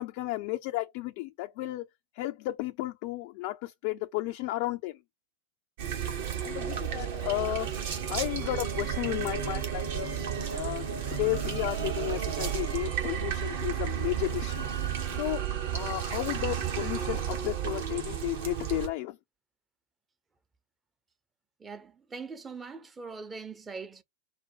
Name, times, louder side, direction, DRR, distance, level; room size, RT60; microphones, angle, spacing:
voice 1, 0.0-1.9 2.1-5.0 6.4-7.7 8.1-10.1 10.5-14.7 15.1-15.5 15.7-19.2, left 18 dB, 45° left, 0.3 m, -33 dB
sound 1, 5.8-18.9, right 8 dB, 55° right, 1.2 m, -32 dB
voice 2, 21.6-24.0, right 4 dB, 15° right, 0.6 m, -42 dB
4.4 x 2.1 x 4.3 m
figure-of-eight pair, 90°, 0 cm